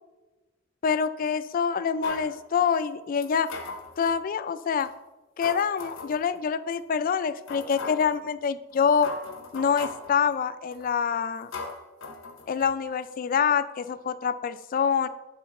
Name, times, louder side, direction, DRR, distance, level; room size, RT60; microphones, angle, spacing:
voice 1, 0.8-3.5 4.0-4.9 5.4-9.1 9.5-11.5 12.5-15.1, left 6 dB, 45° left, 13 dB, 0.3 m, -26 dB
sound 1, 2.0-2.3 3.2-4.2 4.8-4.9 5.4-6.2 6.7-6.8 7.5-8.1 8.7-8.8 9.0-10.1 10.7-11.0 11.5-12.7 13.0-13.1, left 3 dB, 85° left, 0.8 m, -38 dB
10.5 x 4.3 x 3.7 m, 1.1 s
head